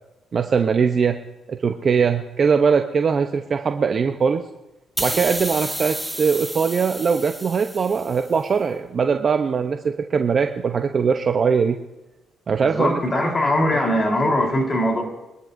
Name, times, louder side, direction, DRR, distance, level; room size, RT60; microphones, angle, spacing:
voice 1, 0.3-1.2 1.5-4.4 5.0-11.8 12.5-13.0, right 6 dB, 45° right, 5 dB, 0.8 m, -21 dB
sound 1, 5.0-8.4, right 1 dB, ahead, 1.3 m, -31 dB
voice 2, 12.6-15.0, left 1 dB, 30° left, 0 dB, 3.8 m, -21 dB
24.5 x 13.0 x 2.7 m, 1.0 s
cardioid pair, 90°, 0 cm